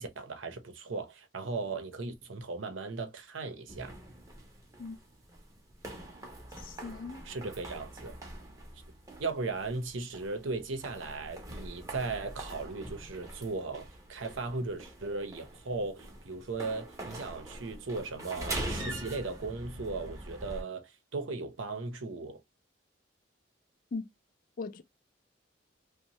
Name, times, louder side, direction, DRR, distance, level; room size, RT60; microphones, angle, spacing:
voice 1, 0.0-3.9 7.2-8.2 9.2-22.4, right 3 dB, 85° right, 0.7 m, -37 dB
sound 1, 3.7-20.6, right 1 dB, 15° right, 0.7 m, -43 dB
voice 2, 6.6-7.2 23.9-24.0 24.6-24.8, left 4 dB, 45° left, 0.4 m, -39 dB
2.7 x 2.2 x 2.9 m
head